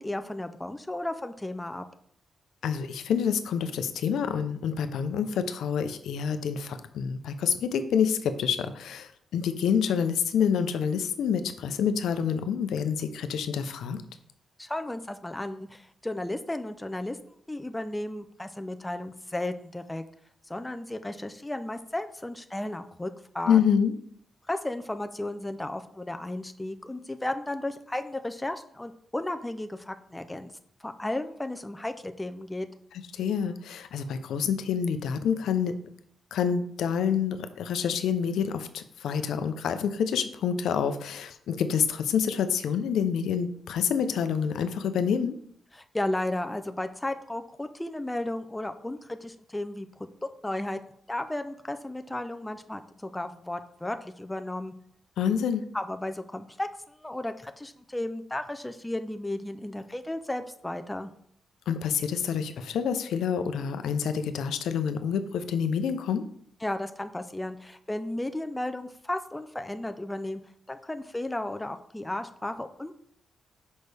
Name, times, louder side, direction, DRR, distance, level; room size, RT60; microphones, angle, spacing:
voice 1, 0.0-1.9 14.6-17.2 17.5-20.0 20.5-23.6 24.5-30.5 30.8-32.7 45.8-49.9 50.2-50.8 51.1-54.7 55.7-61.1 66.6-70.4 70.7-72.9, left 1 dB, 10° left, 8 dB, 0.4 m, -34 dB
voice 2, 2.6-14.0 23.5-23.9 33.1-35.8 36.3-45.3 55.2-55.6 61.7-66.2, left 7 dB, 90° left, 10 dB, 0.6 m, -27 dB
6.3 x 5.3 x 3.4 m, 0.65 s
cardioid pair, 135°, 0 cm